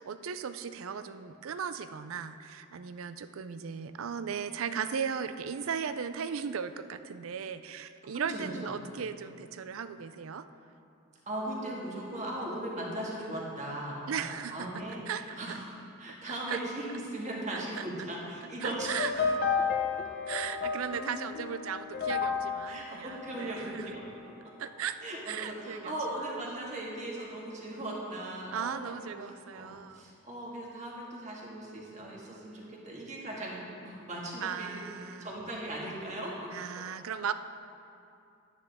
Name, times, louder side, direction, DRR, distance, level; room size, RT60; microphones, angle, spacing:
voice 1, 0.0-10.5 14.1-14.7 15.1-15.6 16.3-16.6 17.5-17.8 18.6-19.4 20.3-23.9 24.6-25.0 25.3-25.9 26.5-26.7 28.5-30.0 34.4-35.3 36.5-37.3, right 7 dB, 80° right, 11 dB, 0.4 m, -37 dB
voice 2, 8.1-8.7 11.3-18.9 22.7-24.0 25.0-34.8 35.2-36.3, right 1 dB, 35° right, -3 dB, 1.7 m, -38 dB
sound 1, 18.8-24.1, left 5 dB, 45° left, 0.7 m, -32 dB
11.5 x 9.6 x 3.5 m, 2.6 s
head